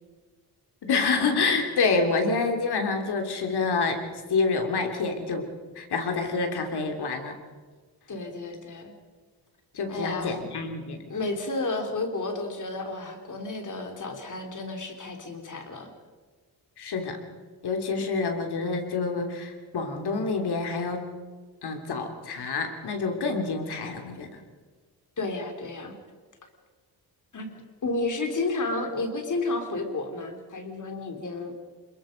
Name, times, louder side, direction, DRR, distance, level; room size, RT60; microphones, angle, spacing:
voice 1, 0.8-4.0 4.3-5.5 5.7-7.3 9.7-11.0 16.8-17.2 17.6-21.1 21.6-24.4, left 4 dB, 90° left, 5 dB, 3.3 m, -27 dB
voice 2, 8.1-8.9 9.9-10.5 11.1-15.9 25.2-25.9 27.3-31.5, left 2 dB, 50° left, 5 dB, 3.6 m, -32 dB
27.0 x 22.0 x 5.3 m, 1.4 s
wide cardioid pair, 135°, 38 cm